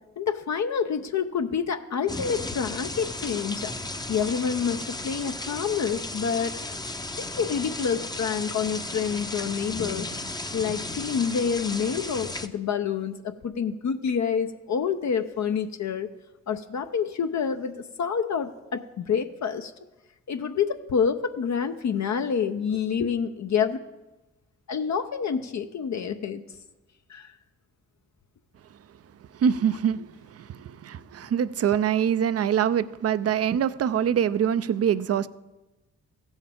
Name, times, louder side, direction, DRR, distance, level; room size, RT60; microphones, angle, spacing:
voice 1, 0.2-3.7 4.1-6.6 7.2-10.1 10.5-16.1 16.5-19.7 20.3-23.8 24.7-26.4 27.1-27.3, left 6 dB, 50° left, 6 dB, 0.7 m, -27 dB
sound 1, 2.1-12.5, left 2 dB, 10° left, 0.7 m, -35 dB
voice 2, 29.4-35.3, right 8 dB, 40° right, 16 dB, 0.5 m, -24 dB
15.5 x 7.2 x 3.6 m, 1.1 s
hypercardioid pair, 45°, 36 cm